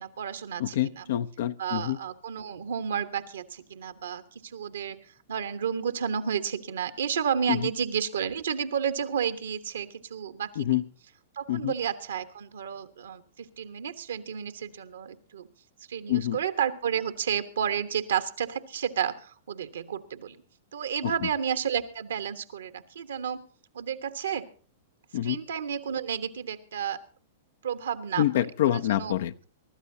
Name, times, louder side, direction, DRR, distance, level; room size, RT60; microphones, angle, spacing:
voice 1, 0.0-1.0 1.6-5.0 5.3-10.8 11.3-15.5 15.9-20.4 20.7-23.4 23.7-24.5 25.2-27.0 27.6-28.2 28.6-29.1, right 8 dB, 75° right, 1.2 m, -31 dB
voice 2, 0.6-2.0 7.5-7.7 10.6-10.8 11.5-11.7 16.1-16.4 21.0-21.3 25.1-25.4 28.2-29.5, left 12 dB, 65° left, 0.7 m, -27 dB
24.0 x 13.0 x 2.8 m
hypercardioid pair, 105°, 0 cm